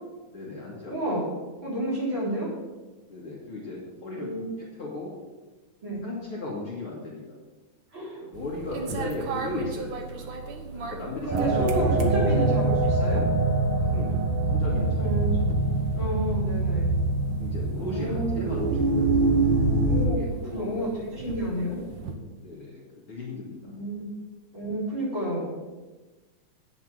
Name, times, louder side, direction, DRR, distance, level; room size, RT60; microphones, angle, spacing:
voice 1, 0.3-1.3 3.1-5.1 6.0-7.4 8.2-12.6 13.8-15.3 17.3-19.3 19.6-19.8 20.0-21.0 22.4-22.8 23.1-23.7, left 2 dB, 45° left, -4 dB, 2.5 m, -37 dB
voice 2, 0.9-1.3 1.6-2.5 4.1-4.5 5.8-6.1 7.9-8.2 10.9-13.2 15.0-15.4 15.9-16.9 17.8-18.4 19.8-20.2 20.5-21.8 23.6-24.1 24.5-25.7, equal, 40° right, -6 dB, 4.7 m, -30 dB
sound 1, 8.3-22.2, right 3 dB, 70° right, 1.1 m, -39 dB
sound 2, 11.3-20.1, right 2 dB, 85° right, 2.8 m, -24 dB
9.1 x 7.2 x 7.6 m, 1.2 s
omnidirectional pair, 3.5 m